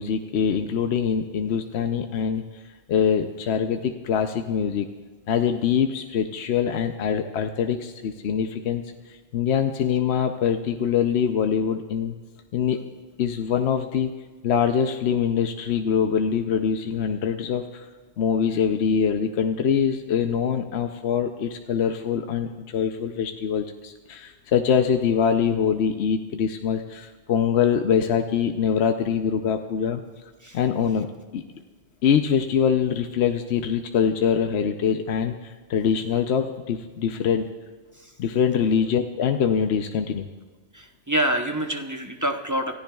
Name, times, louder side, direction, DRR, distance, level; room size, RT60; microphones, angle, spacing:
voice 1, 0.0-2.4 2.9-4.9 5.3-12.1 12.5-12.8 13.2-14.1 14.4-17.9 18.2-30.0 30.5-31.1 31.3-31.4 32.0-37.5 38.2-40.3, left 7 dB, 70° left, 6 dB, 0.9 m, -24 dB
voice 2, 40.7-42.7, right 1 dB, 20° right, 5 dB, 0.7 m, -26 dB
29.0 x 14.5 x 2.3 m, 1.4 s
omnidirectional pair, 1.2 m